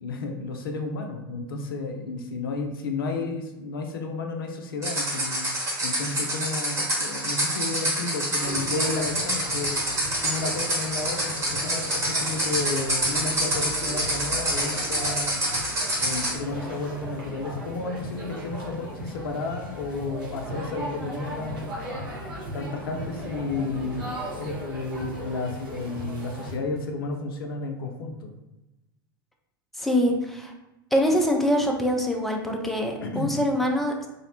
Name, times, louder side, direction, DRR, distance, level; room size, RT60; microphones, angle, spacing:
voice 1, 0.0-5.4 5.8-9.8 10.2-15.4 16.0-21.7 22.5-28.3 33.0-33.3, left 3 dB, 70° left, 4 dB, 0.4 m, -32 dB
sound 1, 4.8-16.4, right 1 dB, 25° right, 1.0 m, -27 dB
sound 2, 8.4-26.5, equal, 60° right, 0.9 m, -37 dB
voice 2, 29.8-30.5 30.9-33.9, equal, ahead, 1 dB, 0.4 m, -24 dB
2.6 x 2.0 x 2.8 m, 0.97 s
figure-of-eight pair, 85°, 12 cm